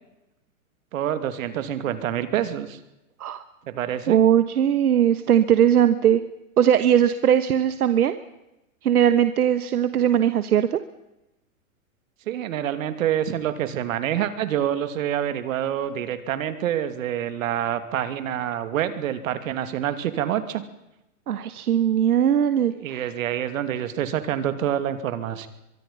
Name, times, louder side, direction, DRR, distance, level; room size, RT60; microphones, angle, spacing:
voice 1, 0.9-2.8 3.7-4.2 12.3-20.6 22.7-25.5, right 10 dB, 65° right, 10 dB, 2.7 m, -27 dB
voice 2, 4.1-6.2 6.6-8.2 8.8-10.8 21.3-23.1, right 9 dB, 85° right, 11 dB, 1.3 m, -19 dB
24.0 x 23.5 x 5.6 m, 0.92 s
hypercardioid pair, 140°, 44 cm